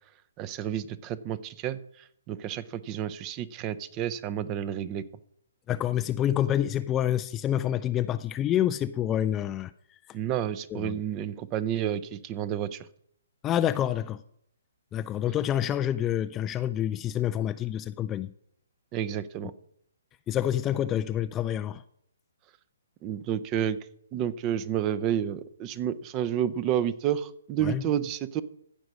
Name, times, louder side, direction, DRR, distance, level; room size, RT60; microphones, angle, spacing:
voice 1, 0.4-5.1 10.1-12.9 18.9-19.5 23.0-23.8 24.1-28.4, right 10 dB, 25° right, 0.6 m, -30 dB
voice 2, 5.7-9.7 10.7-11.0 13.4-14.2 14.9-18.3 20.3-21.8 27.6-27.8, left 11 dB, 20° left, 0.3 m, -27 dB
15.0 x 5.2 x 6.3 m
figure-of-eight pair, 130°, 0 cm